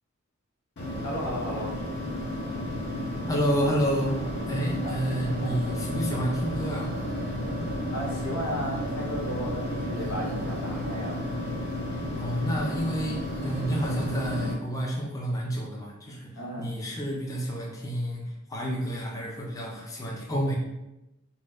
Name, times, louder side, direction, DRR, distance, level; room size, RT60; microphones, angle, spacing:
sound 1, 0.8-14.5, left 1 dB, 55° left, 0.6 m, -33 dB
voice 1, 1.0-1.8 5.4-5.6 7.9-11.2 16.3-16.7, equal, 90° left, -1 dB, 0.8 m, -34 dB
voice 2, 3.3-4.2 4.5-6.9 12.2-20.6, equal, 15° left, -2 dB, 0.4 m, -29 dB
sound 2, 3.4-15.2, right 2 dB, 75° right, 0.4 m, -41 dB
4.2 x 2.1 x 2.3 m, 0.94 s
head